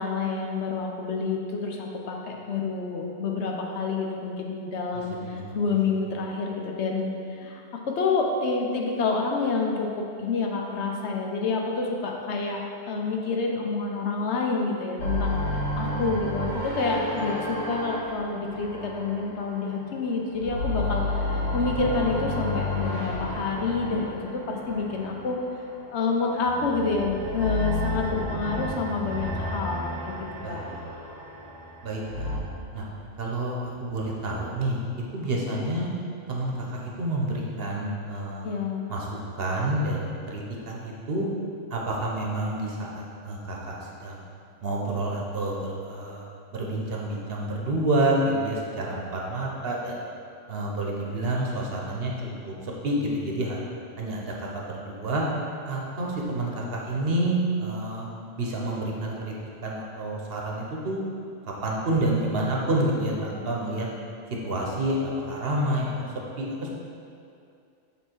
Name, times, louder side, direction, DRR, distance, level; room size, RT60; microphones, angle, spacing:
voice 1, 0.0-12.6 12.9-25.4 25.9-30.2 30.5-30.6 38.4-38.9, left 4 dB, 70° left, 1 dB, 0.9 m, -28 dB
sound 1, 15.0-19.9 20.3-25.6 26.4-32.4, left 1 dB, 85° left, 1.9 m, -31 dB
voice 2, 30.4-30.8 31.8-32.3 32.7-32.9 33.2-34.8 35.1-35.9 36.3-38.5 38.9-41.3 41.7-44.2 44.6-46.3 46.5-50.0 50.5-52.1 52.4-53.6 54.0-55.3 55.7-58.1 58.4-59.3 59.6-61.1 61.6-63.9 64.4-66.1 66.4-66.5, right 1 dB, 55° right, -2 dB, 1.0 m, -28 dB
7.2 x 3.5 x 4.4 m, 2.4 s
omnidirectional pair, 1.3 m